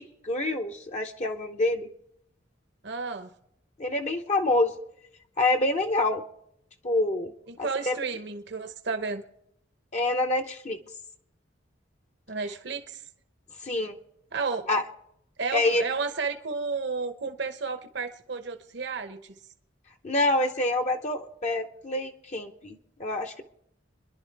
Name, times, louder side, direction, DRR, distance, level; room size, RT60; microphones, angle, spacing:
voice 1, 0.0-1.9 3.8-4.7 5.4-6.2 6.8-7.3 7.6-7.9 9.9-10.8 13.6-14.0 14.7-14.8 15.5-15.8 20.0-23.4, left 2 dB, 40° left, 4 dB, 0.8 m, -26 dB
voice 2, 2.8-3.3 7.5-9.2 12.3-13.0 14.3-14.7 15.4-19.4, right 4 dB, 65° right, 7 dB, 0.9 m, -32 dB
27.5 x 11.0 x 3.4 m, 0.78 s
head